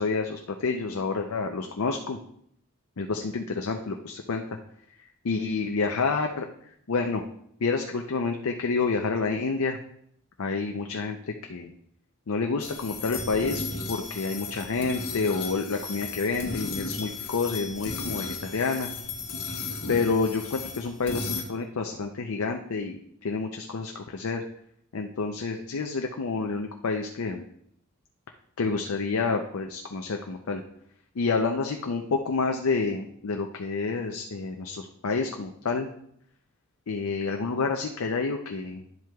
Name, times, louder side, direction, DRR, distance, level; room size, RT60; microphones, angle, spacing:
voice 1, 0.0-2.2 3.0-4.4 5.2-7.2 7.6-9.8 10.4-11.7 12.3-13.6 13.9-18.9 19.9-24.4 24.9-27.4 28.6-30.6 31.2-35.9 36.9-38.8, left 4 dB, 70° left, 3 dB, 0.5 m, -29 dB
sound 1, 12.6-21.4, left 3 dB, 90° left, 1.3 m, -35 dB
10.5 x 7.6 x 2.3 m, 0.69 s
head